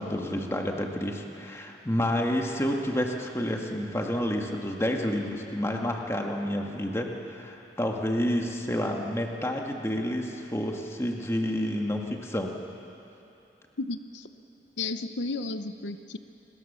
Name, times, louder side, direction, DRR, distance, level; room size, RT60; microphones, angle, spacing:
voice 1, 0.0-12.5, equal, 15° left, 1 dB, 1.9 m, -29 dB
voice 2, 13.8-14.3 14.8-16.2, left 3 dB, 85° left, 10 dB, 0.8 m, -33 dB
29.0 x 21.0 x 6.9 m, 2.9 s
head